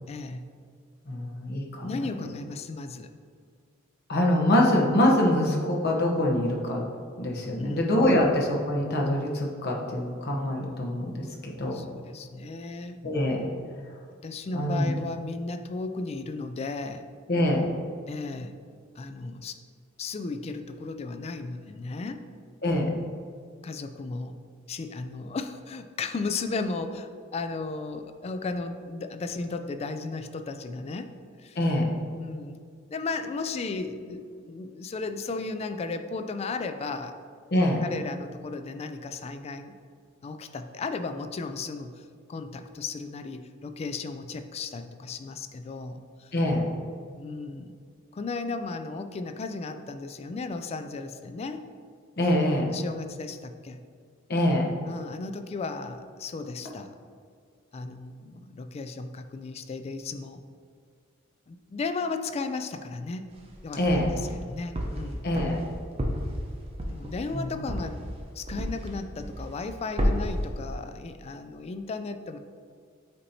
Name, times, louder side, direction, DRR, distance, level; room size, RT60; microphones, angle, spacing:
voice 1, 0.1-0.5 1.8-3.1 7.6-8.3 11.7-13.0 14.2-17.1 18.1-18.5 19.0-19.6 20.0-22.2 23.6-24.4 24.7-31.1 31.4-31.6 32.2-32.6 32.9-37.1 37.8-39.7 40.2-46.3 47.2-47.8 48.1-51.6 52.7-53.8 54.9-56.9 57.7-60.4 61.5-63.3 63.6-65.3 66.8-68.0 68.4-72.4, left 3 dB, 30° left, 8 dB, 0.3 m, -35 dB
voice 2, 1.1-1.9 4.1-6.9 7.2-11.8 13.0-13.4 14.5-14.9 17.3-17.7 22.6-22.9 31.6-31.9 37.5-37.8 46.3-46.7 52.2-52.7 54.3-54.7 63.7-64.1 65.2-65.6 67.3-67.5, left 1 dB, 50° left, -1 dB, 0.9 m, -24 dB
sound 1, 63.3-64.3 64.8-68.9 69.2-69.7 70.0-70.5, equal, 30° right, 0.7 m, -30 dB
8.3 x 2.8 x 4.1 m, 2.1 s
head